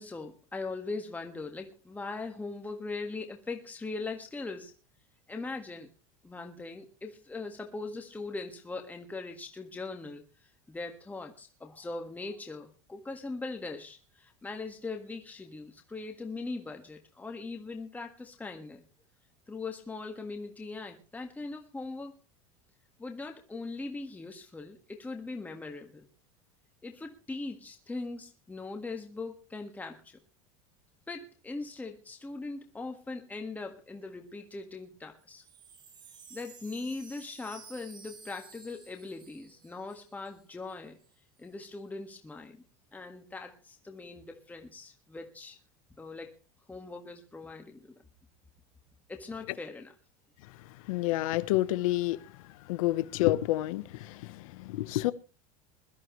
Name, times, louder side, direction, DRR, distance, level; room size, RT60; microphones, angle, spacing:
voice 1, 0.0-4.7 5.3-5.9 6.2-18.9 19.5-22.2 23.0-26.1 26.8-30.2 31.1-35.4 36.3-41.0 41.4-42.6 42.9-45.6 46.0-46.4 46.7-48.0 49.1-49.9, left 3 dB, 10° left, 1.7 m, -40 dB
Wind chime, 35.2-40.4 40.7-40.8 41.0-41.5, right 5 dB, 25° right, 2.7 m, -53 dB
voice 2, 50.9-52.2 52.6-55.1, left 16 dB, 80° left, 0.9 m, -29 dB
22.0 x 13.0 x 3.1 m
supercardioid pair, 130°, 17 cm